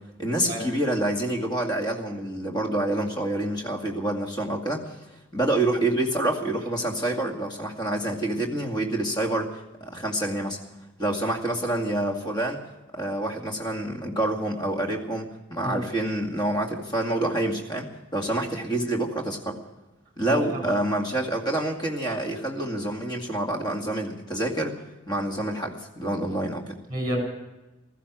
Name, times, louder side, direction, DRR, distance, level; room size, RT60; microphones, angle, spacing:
voice 1, 0.2-4.8 5.3-10.6 11.0-12.6 12.9-19.6 20.2-24.8 25.1-26.8, right 1 dB, 20° left, 1 dB, 2.2 m, -27 dB
voice 2, 20.3-20.8 26.9-27.2, equal, 20° right, 3 dB, 5.9 m, -30 dB
16.0 x 14.5 x 6.1 m, 1.0 s
head